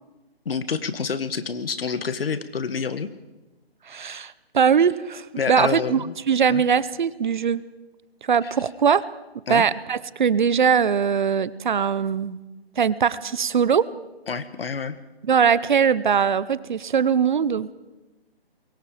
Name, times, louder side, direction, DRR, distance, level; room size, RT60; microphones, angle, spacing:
voice 1, 0.5-3.1 5.4-6.1 6.5-6.6 8.4-8.5 9.5-9.7 14.3-15.0, left 5 dB, 65° left, 11 dB, 1.8 m, -28 dB
voice 2, 3.9-7.6 8.2-9.0 9.5-12.4 12.8-13.9 15.2-17.7, right 7 dB, 50° right, 17 dB, 0.8 m, -21 dB
26.5 x 23.0 x 5.1 m, 1.1 s
hypercardioid pair, 160°, 31 cm